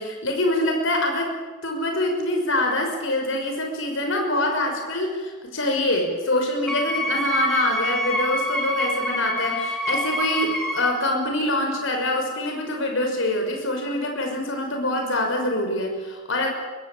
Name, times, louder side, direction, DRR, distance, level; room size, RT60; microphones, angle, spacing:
voice 1, 0.0-1.3 1.6-16.5, left 1 dB, 70° left, 3 dB, 6.0 m, -25 dB
Wind instrument woodwind instrument, 6.7-11.0, equal, 5° left, 4.2 m, -26 dB
26.0 x 23.5 x 8.8 m, 1.3 s
head